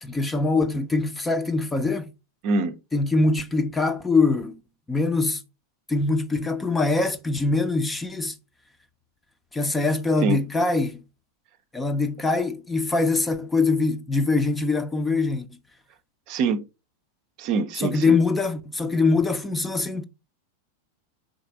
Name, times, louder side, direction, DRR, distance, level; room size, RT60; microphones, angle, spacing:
voice 1, 0.0-2.1 2.9-4.6 4.9-5.4 5.9-8.3 9.5-11.0 11.7-15.5 17.8-20.0, left 3 dB, 10° left, 0.6 m, -23 dB
voice 2, 2.4-2.8 10.2-10.4 16.3-16.6 17.4-18.2, right 4 dB, 45° right, 0.6 m, -24 dB
5.2 x 4.1 x 4.4 m
figure-of-eight pair, 90°, 0 cm